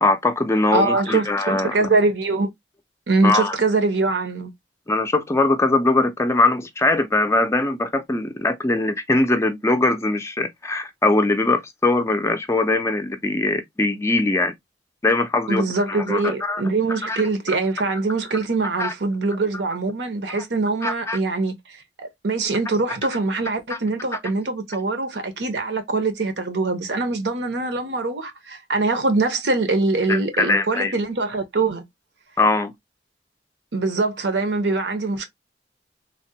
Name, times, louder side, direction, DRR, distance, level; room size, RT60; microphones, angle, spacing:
voice 1, 0.0-1.9 3.2-3.6 4.9-14.5 15.0-16.6 16.9-17.2 18.8-18.9 20.8-21.2 23.7-23.8 30.1-30.9 32.4-32.7, left 2 dB, 15° left, 0.4 m, -21 dB
voice 2, 0.7-2.5 3.1-4.5 15.5-31.8 33.7-35.3, right 3 dB, 75° right, 0.8 m, -23 dB
3.3 x 2.1 x 2.7 m
head